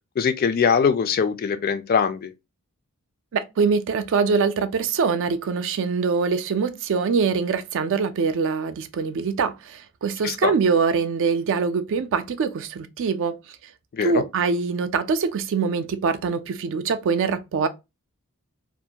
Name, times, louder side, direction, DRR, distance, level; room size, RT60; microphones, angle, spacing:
voice 1, 0.2-2.3 10.2-10.5 13.9-14.2, left 6 dB, 40° left, 0.3 m, -22 dB
voice 2, 3.3-13.4 14.0-17.7, right 5 dB, 60° right, 0.3 m, -23 dB
2.4 x 2.2 x 2.7 m
head